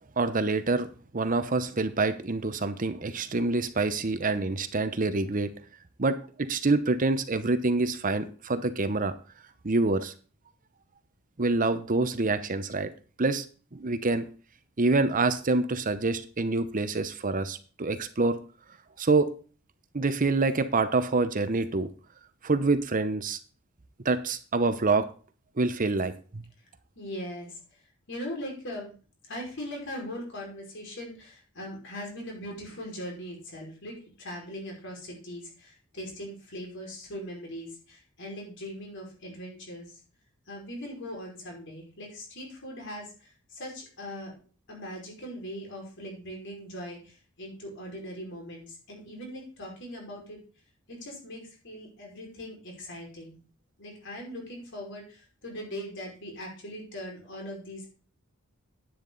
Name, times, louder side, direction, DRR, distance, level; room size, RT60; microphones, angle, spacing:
voice 1, 0.2-0.9 1.1-5.5 6.0-9.1 9.6-10.1 11.4-12.9 13.2-13.4 13.7-14.3 14.8-18.4 19.0-19.3 19.9-21.9 22.4-23.4 24.0-25.1 25.6-26.4, right 3 dB, 40° right, 11 dB, 0.8 m, -26 dB
voice 2, 27.0-27.8 28.1-28.9 29.3-40.0 40.5-44.4 44.7-50.4 50.9-53.4 53.8-57.9, equal, 60° left, 0 dB, 5.3 m, -40 dB
10.5 x 8.9 x 4.0 m, 0.38 s
head